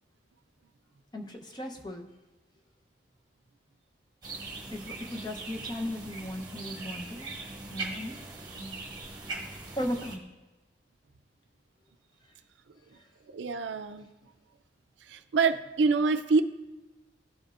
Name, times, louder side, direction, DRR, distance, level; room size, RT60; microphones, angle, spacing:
voice 1, 1.1-2.1 4.7-7.4 7.7-8.2 8.5-8.8 9.8-10.3 12.2-12.3 12.9-13.0, equal, 20° left, 2 dB, 0.7 m, -37 dB
sound 1, 4.2-10.2, right 3 dB, 20° right, 1.2 m, -41 dB
voice 2, 13.3-14.1 15.1-16.4, right 4 dB, 75° right, 10 dB, 0.4 m, -26 dB
14.0 x 5.3 x 2.4 m, 1.1 s
head